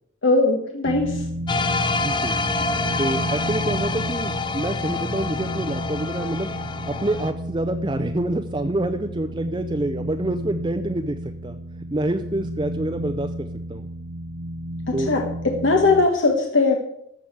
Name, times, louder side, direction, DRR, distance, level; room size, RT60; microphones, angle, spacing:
voice 1, 0.2-1.2 14.9-16.8, left 3 dB, 70° left, 2 dB, 1.4 m, -20 dB
sound 1, 0.8-16.1, equal, 80° right, 1.0 m, -32 dB
sound 2, 1.5-7.3, left 3 dB, 25° left, 0.6 m, -26 dB
voice 2, 2.0-2.3 3.0-6.5 6.9-11.2 11.4-11.6 11.9-13.9 14.9-15.2, right 1 dB, 25° right, 7 dB, 0.5 m, -27 dB
14.5 x 4.9 x 8.6 m, 0.77 s
head